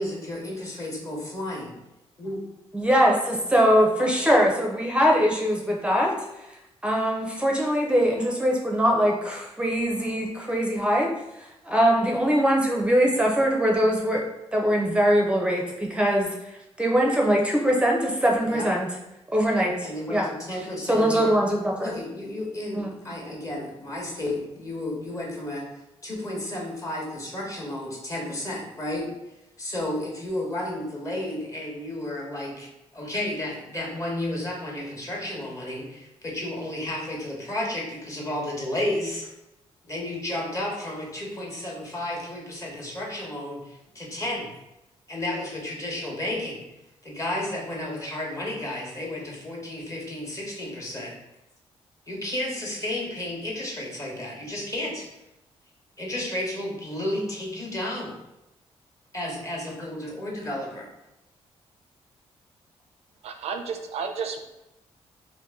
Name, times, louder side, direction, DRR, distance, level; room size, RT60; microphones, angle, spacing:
voice 1, 0.0-1.7 2.2-2.4 10.0-10.5 18.5-18.7 19.5-21.3 21.8-25.7 26.0-29.1 29.6-39.3 39.8-44.5 45.1-46.6 47.0-51.2 52.1-55.1 56.0-58.2 59.1-60.9, left 1 dB, 30° left, -2 dB, 1.1 m, -32 dB
voice 2, 2.7-6.1 6.8-11.1 11.6-14.3 14.5-16.3 16.8-18.9 19.3-19.7 20.1-20.3 20.9-21.9 22.7-22.9, equal, 10° right, -1 dB, 0.5 m, -22 dB
voice 3, 63.2-64.4, right 5 dB, 70° right, 6 dB, 0.4 m, -32 dB
2.8 x 2.5 x 3.6 m, 0.93 s
cardioid pair, 90°, 11 cm